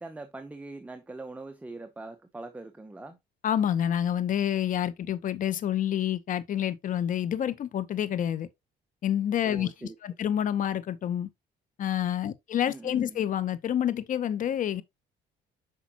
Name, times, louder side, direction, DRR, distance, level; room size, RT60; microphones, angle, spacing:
voice 1, 0.0-3.2 9.4-9.9 12.7-13.2, right 2 dB, 10° right, 0.9 m, -42 dB
voice 2, 3.4-8.5 9.0-9.7 10.0-11.3 11.8-14.8, left 10 dB, 50° left, 0.9 m, -28 dB
8.5 x 5.7 x 2.9 m
cardioid pair, 110°, 17 cm